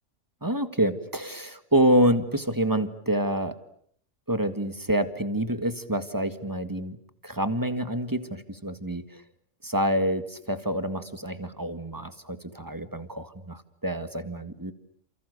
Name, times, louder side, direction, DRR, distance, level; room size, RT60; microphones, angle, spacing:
voice 1, 0.4-3.5 4.3-7.0 7.2-9.2 9.6-14.7, right 1 dB, 15° right, 10 dB, 1.8 m, -27 dB
29.5 x 28.5 x 6.8 m, 0.64 s
omnidirectional pair, 1.3 m